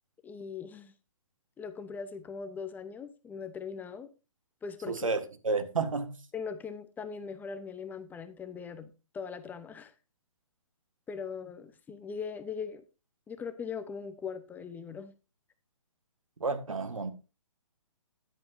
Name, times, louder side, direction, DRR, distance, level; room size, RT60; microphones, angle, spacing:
voice 1, 0.2-0.9 1.6-4.1 4.6-5.0 6.3-9.9 11.1-12.8 13.3-15.1, left 6 dB, 10° left, 0.8 m, -40 dB
voice 2, 4.9-6.2 16.4-17.1, right 4 dB, 80° right, 1.9 m, -31 dB
13.5 x 10.5 x 2.7 m
figure-of-eight pair, 130°, 17 cm